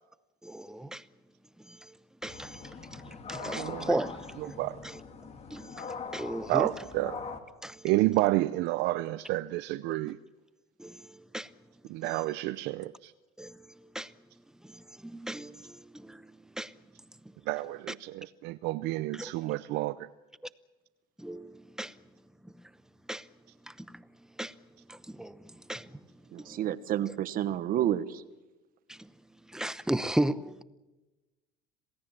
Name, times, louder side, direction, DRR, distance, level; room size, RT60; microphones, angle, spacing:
voice 1, 0.4-1.0 2.2-2.5 3.3-4.2 4.8-5.0 5.5-5.6 6.1-6.7 7.6-7.7 10.8-10.9 11.3-11.5 13.4-13.5 13.9-14.1 15.0-15.5 16.6-16.7 19.1-19.3 21.2-21.5 21.8-21.9 23.1-23.2 24.4-24.5 25.2-25.3 25.7-25.9 29.5-30.5, right 1 dB, 5° right, 0.8 m, -33 dB
sound 1, 2.2-7.4, left 5 dB, 35° left, 2.5 m, -42 dB
voice 2, 3.5-4.0 4.4-4.8 6.5-7.2 7.8-10.2 11.9-13.1 17.5-20.1, right 18 dB, 70° right, 0.7 m, -30 dB
voice 3, 26.3-28.2, right 11 dB, 50° right, 1.3 m, -30 dB
27.5 x 17.5 x 7.4 m
cardioid pair, 120°, 18 cm